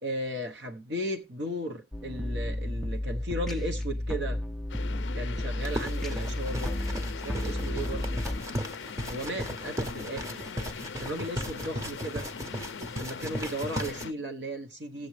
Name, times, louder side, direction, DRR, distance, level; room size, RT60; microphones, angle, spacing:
voice 1, 0.0-4.4 5.1-6.7 7.2-8.2 9.1-10.4 11.0-12.3 13.0-15.1, right 1 dB, 60° right, 1.0 m, -35 dB
sound 1, 1.9-8.4, left 1 dB, ahead, 0.5 m, -32 dB
sound 2, 4.7-14.1, left 6 dB, 65° left, 0.5 m, -41 dB
sound 3, 5.6-14.1, equal, 15° right, 0.8 m, -37 dB
15.0 x 7.8 x 3.2 m
head